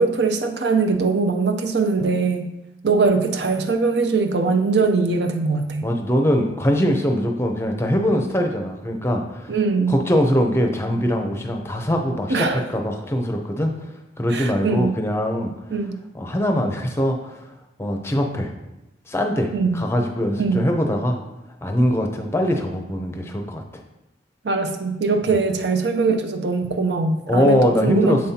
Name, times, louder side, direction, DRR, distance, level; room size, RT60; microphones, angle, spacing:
voice 1, 0.0-2.5 2.8-5.9 9.5-9.9 12.3-12.6 14.3-15.0 15.7-16.0 19.5-19.8 20.4-20.6 24.4-28.2, right 4 dB, 70° right, 6 dB, 0.6 m, -21 dB
voice 2, 5.8-9.5 9.9-13.7 14.2-15.5 16.1-17.2 17.8-18.5 19.1-21.2 21.6-23.8 25.3-25.4 27.3-28.3, equal, 15° left, 3 dB, 0.6 m, -22 dB
7.6 x 5.4 x 2.8 m, 0.96 s
head